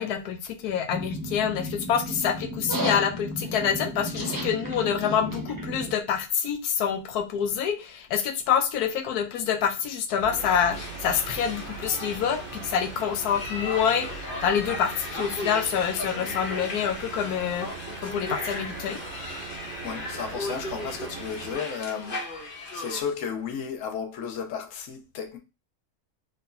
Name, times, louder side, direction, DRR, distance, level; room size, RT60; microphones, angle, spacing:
voice 1, 0.0-17.7 18.0-19.0, left 8 dB, 90° left, 1.2 m, -27 dB
sound 1, 0.9-5.9, right 1 dB, 15° right, 0.9 m, -33 dB
sound 2, 10.2-21.6, right 5 dB, 55° right, 1.0 m, -41 dB
sound 3, 10.4-23.0, left 2 dB, 40° left, 1.0 m, -37 dB
voice 2, 19.8-22.2 22.7-25.4, left 7 dB, 65° left, 1.1 m, -33 dB
4.0 x 3.1 x 2.7 m
omnidirectional pair, 1.6 m